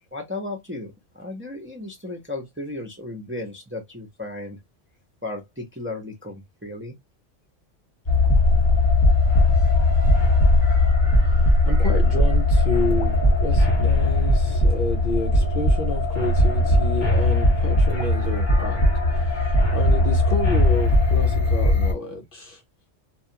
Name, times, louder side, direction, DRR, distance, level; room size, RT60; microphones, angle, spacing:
voice 1, 0.1-4.6 5.2-7.0 14.0-14.1 19.3-19.5 21.6-21.7, left 2 dB, 15° right, 0.5 m, -35 dB
sound 1, 8.1-21.9, left 1 dB, 25° left, 0.9 m, -19 dB
voice 2, 11.2-18.9 19.1-22.6, left 4 dB, 55° left, 0.7 m, -30 dB
2.3 x 2.3 x 2.8 m
omnidirectional pair, 1.2 m